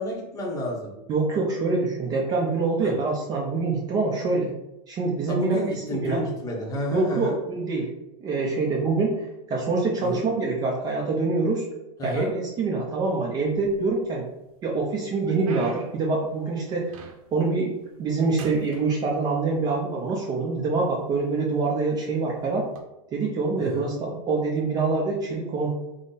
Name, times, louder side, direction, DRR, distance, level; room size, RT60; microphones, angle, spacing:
voice 1, 0.0-0.9 2.8-2.9 5.3-7.3 10.0-10.2 12.0-12.3 23.6-23.9, equal, 20° left, -1 dB, 0.7 m, -30 dB
voice 2, 1.1-4.5 4.9-6.2 6.9-7.9 8.2-11.7 12.0-14.3 14.6-16.8 17.3-22.6 23.1-25.7, right 3 dB, 20° right, -1 dB, 0.4 m, -25 dB
sound 1, 13.5-14.3 14.7-17.5 17.8-18.1 18.4-19.6 20.4-20.5 21.2-21.4 22.6-22.8, right 5 dB, 75° right, 0.7 m, -43 dB
3.7 x 2.0 x 3.9 m, 0.94 s
supercardioid pair, 155°, 18 cm